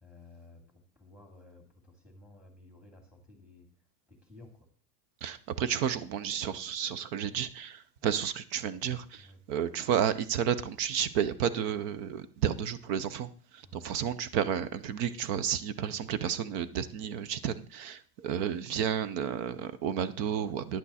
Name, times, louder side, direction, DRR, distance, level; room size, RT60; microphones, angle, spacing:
voice 1, 0.0-0.6 1.0-3.7 4.1-4.7 8.0-8.1 9.2-9.4 13.7-13.9 15.8-16.0, left 2 dB, ahead, 3 dB, 2.0 m, -54 dB
voice 2, 5.2-20.8, right 8 dB, 35° right, 15 dB, 0.5 m, -32 dB
10.5 x 8.5 x 4.1 m, 0.41 s
supercardioid pair, 160°, 47 cm